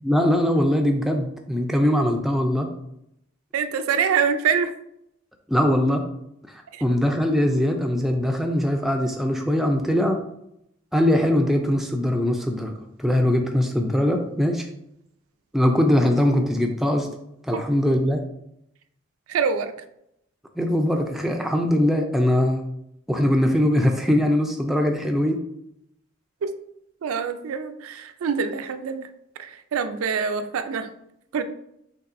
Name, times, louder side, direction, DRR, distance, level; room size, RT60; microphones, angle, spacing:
voice 1, 0.0-2.7 5.5-6.0 6.5-10.2 10.9-12.7 13.0-14.7 15.5-17.1 17.4-18.2 20.6-22.6 23.1-25.4, left 1 dB, ahead, 3 dB, 0.3 m, -21 dB
voice 2, 3.5-4.7 6.7-6.8 17.5-17.6 19.3-19.7 26.4-26.5 27.0-29.1 29.4-30.9 31.3-31.4, right 6 dB, 85° right, 9 dB, 0.4 m, -25 dB
5.3 x 3.4 x 2.5 m, 0.79 s
head